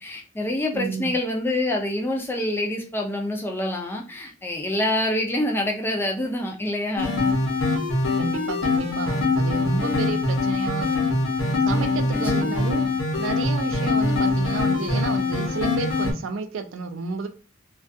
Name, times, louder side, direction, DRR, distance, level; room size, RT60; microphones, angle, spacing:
voice 1, 0.0-7.2 12.1-12.6, left 1 dB, 10° left, 1 dB, 0.4 m, -26 dB
voice 2, 0.7-1.1 8.2-11.1 11.7-12.9 13.2-17.3, right 4 dB, 70° right, 7 dB, 0.4 m, -31 dB
sound 1, 7.0-16.1, left 3 dB, 90° left, 0.8 m, -23 dB
2.2 x 2.2 x 2.6 m, 0.35 s
head